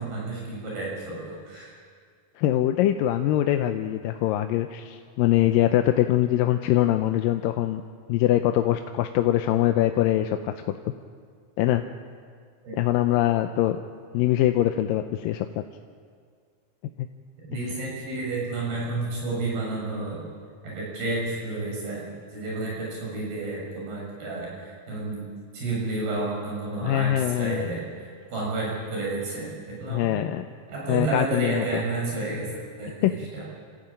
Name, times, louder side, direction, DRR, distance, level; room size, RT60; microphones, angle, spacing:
voice 1, 0.0-1.7 12.6-12.8 17.5-20.2 20.6-22.1 22.3-25.3 25.5-30.1 30.7-32.5 32.8-33.4, right 3 dB, 75° right, -3 dB, 8.7 m, -31 dB
voice 2, 2.4-7.8 8.1-10.9 11.6-11.8 12.8-13.8 14.1-15.5 17.0-17.1 26.8-27.7 29.9-30.5 30.9-31.8 33.0-33.1, left 13 dB, 75° left, 6 dB, 2.3 m, -23 dB
27.0 x 15.0 x 8.9 m, 2.1 s
omnidirectional pair, 4.3 m